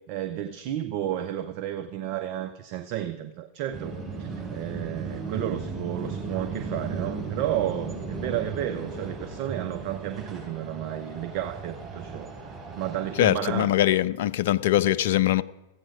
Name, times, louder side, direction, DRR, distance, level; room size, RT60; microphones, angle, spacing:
voice 1, 0.1-13.8, right 11 dB, 45° right, 0.5 m, -32 dB
sound 1, 3.7-13.3, right 4 dB, 25° right, 4.4 m, -36 dB
voice 2, 13.2-15.4, left 13 dB, 55° left, 0.3 m, -22 dB
14.0 x 8.8 x 5.1 m
figure-of-eight pair, 90°, 0 cm